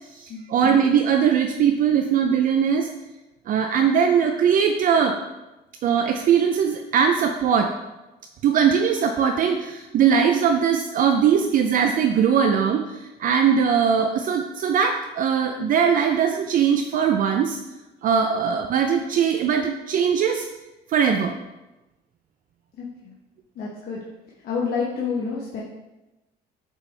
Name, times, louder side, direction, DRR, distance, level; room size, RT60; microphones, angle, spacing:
voice 1, 0.1-2.9 3.5-5.2 5.8-7.7 8.4-17.6 18.0-20.5 20.9-21.3, right 7 dB, 55° right, 5 dB, 0.4 m, -20 dB
voice 2, 22.8-23.1 23.5-24.0 24.4-25.6, left 5 dB, 65° left, -4 dB, 1.0 m, -28 dB
6.9 x 4.3 x 3.3 m, 1.0 s
cardioid pair, 110°, 17 cm